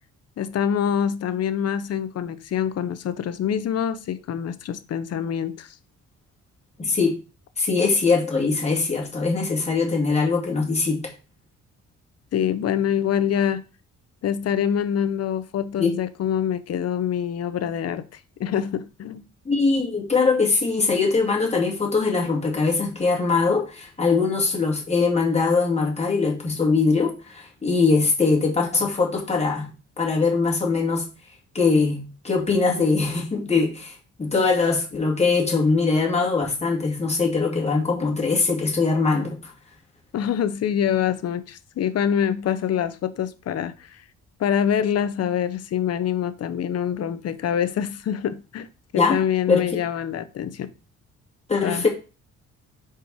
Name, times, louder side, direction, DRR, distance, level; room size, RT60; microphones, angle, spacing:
voice 1, 0.4-5.7 12.3-13.6 14.2-19.2 40.1-44.0 44.4-48.7 49.1-50.7 51.6-51.8, left 9 dB, 55° left, 0.8 m, -25 dB
voice 2, 6.8-7.1 7.6-11.1 15.8-15.9 19.5-29.7 30.0-31.1 31.5-33.9 34.2-39.5 48.9-49.6 51.5-51.9, left 4 dB, 20° left, 2.2 m, -22 dB
5.0 x 4.5 x 4.7 m
cardioid pair, 90°, 30 cm